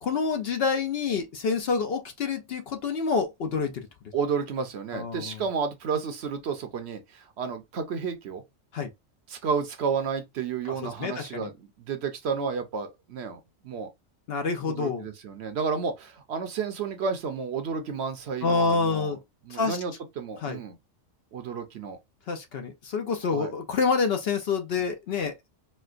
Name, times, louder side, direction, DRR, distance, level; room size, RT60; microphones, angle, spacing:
voice 1, 0.0-3.9 4.9-5.2 8.7-8.9 11.0-11.5 14.3-15.0 18.4-19.2 19.5-19.8 20.4-20.6 22.3-25.3, left 5 dB, 60° left, 0.7 m, -27 dB
voice 2, 4.1-8.4 9.3-13.9 14.7-19.2 19.4-20.8 21.3-22.0 23.2-23.5, right 5 dB, 65° right, 0.9 m, -31 dB
4.3 x 2.1 x 2.4 m
omnidirectional pair, 1.3 m